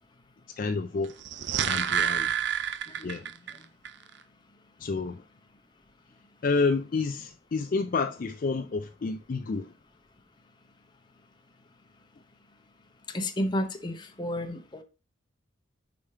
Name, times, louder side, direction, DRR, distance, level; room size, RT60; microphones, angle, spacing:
voice 1, 0.6-1.2 1.7-2.4 3.0-3.3 4.8-5.2 6.4-9.7, left 4 dB, 45° left, 0.4 m, -29 dB
sound 1, 1.1-3.6 3.8-3.9, right 8 dB, 60° right, 0.4 m, -28 dB
voice 2, 13.1-14.8, left 1 dB, 20° left, 0.8 m, -31 dB
5.1 x 4.9 x 4.2 m
head